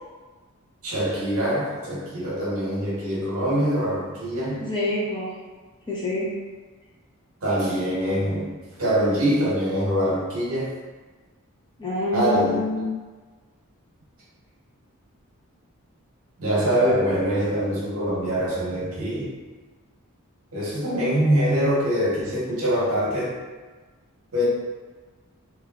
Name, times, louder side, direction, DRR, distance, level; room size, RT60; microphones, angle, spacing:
voice 1, 0.8-4.7 7.4-10.7 12.1-12.6 16.4-19.4 20.5-23.3 24.3-24.4, equal, 75° right, -6 dB, 0.9 m, -24 dB
voice 2, 4.6-5.3 5.9-6.3 11.8-12.9, left 1 dB, 20° left, -7 dB, 0.6 m, -26 dB
3.1 x 2.4 x 2.3 m, 1.3 s
head